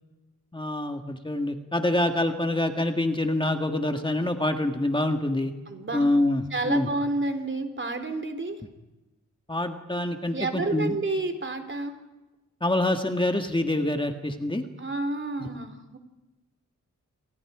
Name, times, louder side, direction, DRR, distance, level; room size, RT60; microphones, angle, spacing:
voice 1, 0.5-5.5 5.9-6.9 9.5-11.0 12.6-14.6 15.4-15.5, left 1 dB, 15° left, 5 dB, 1.8 m, -26 dB
voice 2, 5.7-6.1 6.5-8.6 10.3-12.0 14.8-16.0, right 2 dB, 40° right, 7 dB, 3.2 m, -30 dB
29.5 x 26.0 x 4.9 m, 1.1 s
wide cardioid pair, 110°, 29 cm